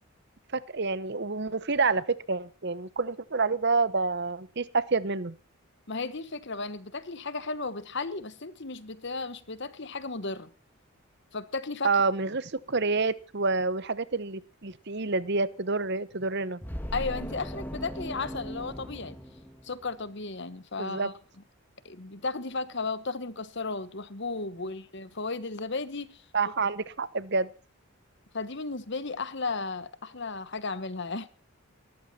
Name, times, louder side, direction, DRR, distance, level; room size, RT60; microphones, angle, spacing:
voice 1, 0.5-5.3 11.8-16.6 20.8-21.1 26.3-27.5, right 4 dB, 50° right, 1.0 m, -28 dB
voice 2, 5.9-10.5 11.3-12.0 16.9-19.2 19.6-21.1 21.8-26.2 28.3-31.3, left 3 dB, 50° left, 1.2 m, -34 dB
sound 1, 16.6-20.1, equal, 10° left, 1.8 m, -38 dB
19.5 x 14.0 x 4.3 m
head